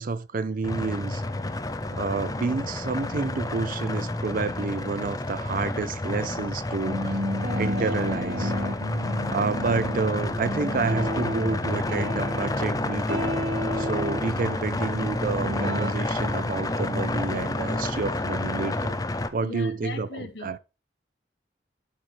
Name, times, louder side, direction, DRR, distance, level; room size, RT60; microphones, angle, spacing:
voice 1, 0.0-1.2 1.9-7.2 7.6-8.5 9.3-13.3 13.8-19.0 19.3-20.6, right 4 dB, 50° right, 0.5 m, -29 dB
sound 1, 0.6-19.3, left 2 dB, 20° left, 0.7 m, -30 dB
sound 2, 6.8-12.7 13.1-14.2 15.4-15.9, equal, 65° right, 1.1 m, -31 dB
voice 2, 19.4-20.5, left 2 dB, 75° left, 1.5 m, -38 dB
12.0 x 4.3 x 3.3 m
head